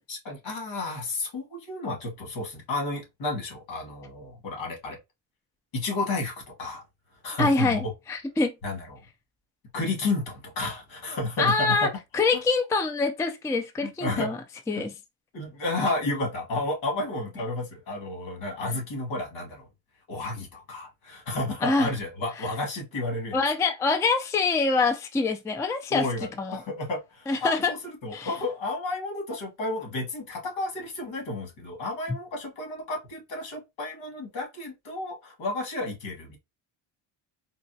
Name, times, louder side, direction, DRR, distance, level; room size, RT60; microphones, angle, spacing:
voice 1, 0.1-5.0 5.7-6.8 7.2-7.9 8.6-9.0 9.7-11.9 12.3-12.4 13.8-14.3 14.7-14.8 15.3-19.7 20.1-23.4 25.9-36.4, left 2 dB, 75° left, 1.8 m, -32 dB
voice 2, 7.4-8.5 11.4-14.4 14.7-15.0 21.6-21.9 23.3-26.1 26.4-26.6 27.3-27.7 28.1-28.3, left 3 dB, 5° left, 0.3 m, -25 dB
3.9 x 2.1 x 2.6 m
cardioid pair, 100°, 46 cm